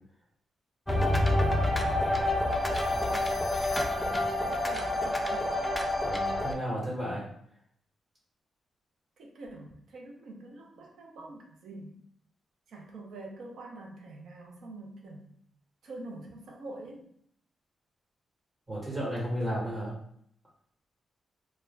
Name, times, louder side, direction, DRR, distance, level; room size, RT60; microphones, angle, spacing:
sound 1, 0.9-6.5, left 1 dB, 10° left, 0.3 m, -28 dB
voice 1, 2.4-3.3 3.6-5.6 9.2-12.0 12.7-15.3 15.8-17.1, right 2 dB, 80° right, 0 dB, 0.6 m, -46 dB
voice 2, 6.0-7.3 18.7-20.0, equal, 35° right, -6 dB, 1.1 m, -33 dB
2.4 x 2.1 x 3.2 m, 0.68 s
cardioid pair, 110°, 0 cm